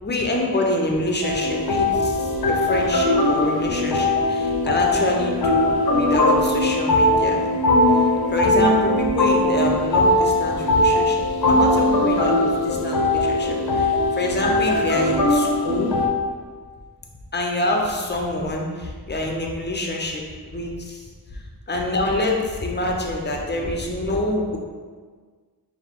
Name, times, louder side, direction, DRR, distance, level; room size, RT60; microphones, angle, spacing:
voice 1, 0.0-7.4 8.3-15.9 17.3-21.4 21.7-24.6, left 1 dB, 25° left, 1 dB, 0.7 m, -26 dB
sound 1, 1.2-16.1, left 1 dB, 60° left, 0.7 m, -20 dB
4.6 x 2.1 x 3.6 m, 1.6 s
cardioid pair, 50°, 41 cm